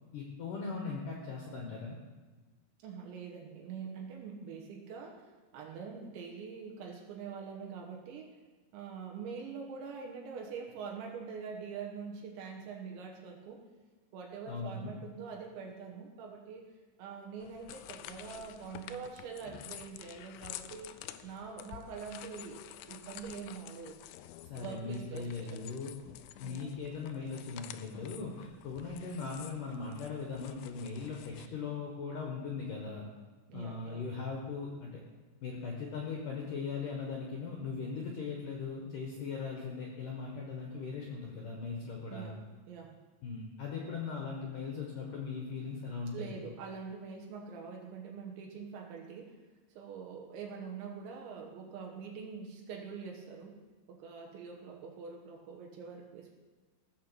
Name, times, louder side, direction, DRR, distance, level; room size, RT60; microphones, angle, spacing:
voice 1, 0.1-2.0 14.5-15.0 24.5-25.9 26.4-33.1 33.5-35.0 35.4-42.3 43.2-46.3, left 5 dB, 60° left, -1 dB, 2.4 m, -39 dB
voice 2, 2.8-5.3 5.5-8.3 8.7-13.6 14.1-16.6 17.0-20.9 21.2-24.0 24.6-25.8 26.4-26.7 33.5-34.0 42.1-42.4 42.7-42.9 46.1-49.4 49.8-53.6 53.9-56.3, right 5 dB, 80° right, 0 dB, 3.5 m, -44 dB
sound 1, 17.4-31.5, left 12 dB, 80° left, 2.5 m, -50 dB
16.0 x 7.1 x 6.9 m, 1.3 s
omnidirectional pair, 5.2 m